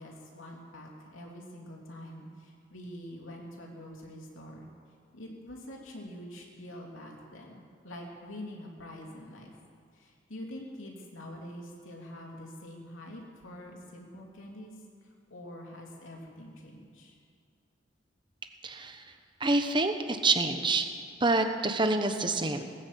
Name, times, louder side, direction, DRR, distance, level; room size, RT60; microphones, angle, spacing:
voice 1, 0.0-4.7 5.1-9.5 9.9-14.7 15.3-17.1, left 1 dB, 85° left, -1 dB, 3.1 m, -45 dB
voice 2, 18.6-19.0 19.4-20.9 21.2-22.7, right 2 dB, 25° right, 7 dB, 1.1 m, -27 dB
19.0 x 9.8 x 7.6 m, 2.4 s
head